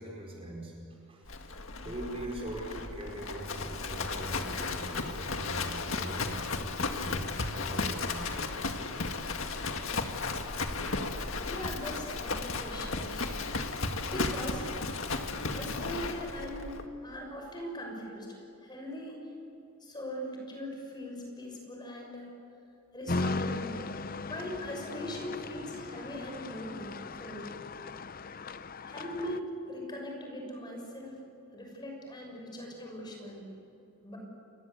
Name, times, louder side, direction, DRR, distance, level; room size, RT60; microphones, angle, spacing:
voice 1, 0.0-1.5 1.8-8.5, right 1 dB, 25° right, -1 dB, 4.9 m, -42 dB
Livestock farm animals working animals, 1.3-16.8, left 3 dB, 65° left, 1.9 m, -35 dB
voice 2, 11.5-13.5 14.0-14.6 15.5-16.7 17.0-18.3 18.6-19.2 19.8-22.3 22.9-23.8 24.2-27.5 28.9-31.2 31.5-33.5 34.0-34.2, equal, 20° left, 1 dB, 6.3 m, -40 dB
sound 1, 23.1-29.4, left 3 dB, 45° left, 0.6 m, -37 dB
30.0 x 24.0 x 8.2 m, 2.8 s
head